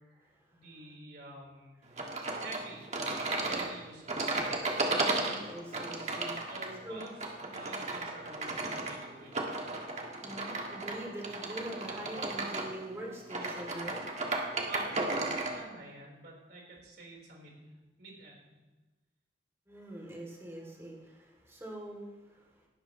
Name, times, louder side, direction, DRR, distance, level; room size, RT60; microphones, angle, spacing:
voice 1, 0.0-1.8 2.4-2.8 3.5-4.5 6.5-7.1 7.4-9.7 14.6-17.6 18.0-18.5, right 2 dB, 60° right, -2 dB, 4.1 m, -48 dB
sound 1, 2.0-15.6, right 2 dB, 35° right, 1.6 m, -35 dB
voice 2, 4.8-6.4 6.8-7.1 10.2-14.0 19.7-22.6, right 1 dB, 15° right, -2 dB, 2.7 m, -44 dB
18.0 x 12.5 x 3.1 m, 1.1 s
head